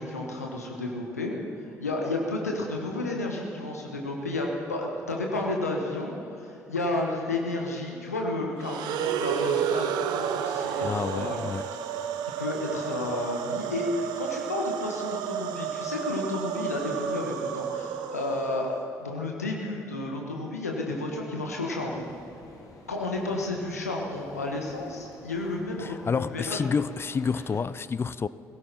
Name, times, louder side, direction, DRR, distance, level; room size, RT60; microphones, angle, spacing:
voice 1, 0.0-11.4 12.4-18.7 19.0-22.0 22.9-26.6, left 2 dB, 85° left, 1.4 m, -32 dB
sound 1, 8.6-18.8, right 8 dB, 60° right, 0.8 m, -31 dB
voice 2, 10.8-11.7 25.8-28.3, left 5 dB, 30° left, 0.5 m, -29 dB
sound 2, 21.9-27.6, left 3 dB, 45° left, 2.3 m, -52 dB
18.5 x 16.5 x 4.3 m
figure-of-eight pair, 50°, 8 cm